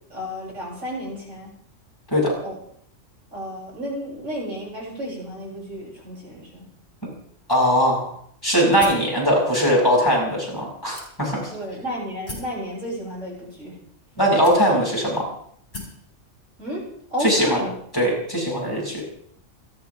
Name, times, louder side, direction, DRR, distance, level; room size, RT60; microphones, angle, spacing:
voice 1, 0.1-1.5 2.4-2.6 3.3-6.6 11.5-13.8 14.5-14.8 16.6-16.8 17.1-17.8, equal, 65° right, -4 dB, 7.9 m, -32 dB
voice 2, 7.5-8.1 8.4-11.5 14.2-15.2 17.2-17.6 17.9-19.0, equal, 15° left, -3 dB, 7.0 m, -20 dB
sound 1, 8.8-9.1 9.9-10.0 11.0-11.5 12.3-12.6 13.5-13.6 14.4-15.0 15.7-16.0, left 2 dB, 35° left, 6.0 m, -37 dB
28.5 x 11.5 x 3.6 m, 0.65 s
omnidirectional pair, 1.3 m